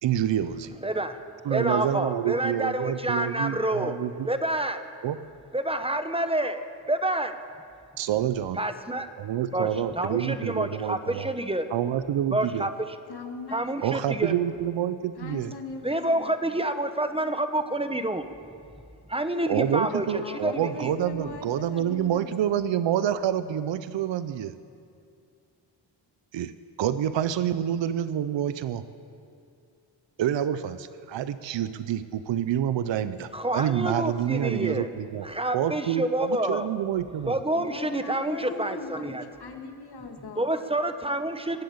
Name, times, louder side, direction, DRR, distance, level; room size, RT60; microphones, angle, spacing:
voice 1, 0.0-0.7 1.4-4.3 5.0-5.2 8.0-8.6 9.2-11.3 11.7-12.7 13.8-15.5 19.5-24.5 26.3-26.5 26.8-28.8 30.2-35.3 35.5-37.4, right 10 dB, 75° right, 13 dB, 0.7 m, -27 dB
voice 2, 0.8-1.2 1.5-4.0 4.3-4.8 5.5-6.6 6.9-7.3 8.6-9.1 9.5-9.7 10.0-11.7 12.3-12.7 13.5-14.3 15.8-18.2 19.1-20.0 20.4-20.9 33.3-34.9 35.2-36.7 37.3-39.2 40.4-41.6, right 1 dB, 15° right, 9 dB, 1.1 m, -28 dB
voice 3, 13.1-14.0 15.2-16.3 20.2-22.5 37.5-40.5, left 3 dB, 60° left, 4 dB, 1.9 m, -40 dB
20.0 x 7.9 x 8.6 m, 2.4 s
cardioid pair, 65°, 45 cm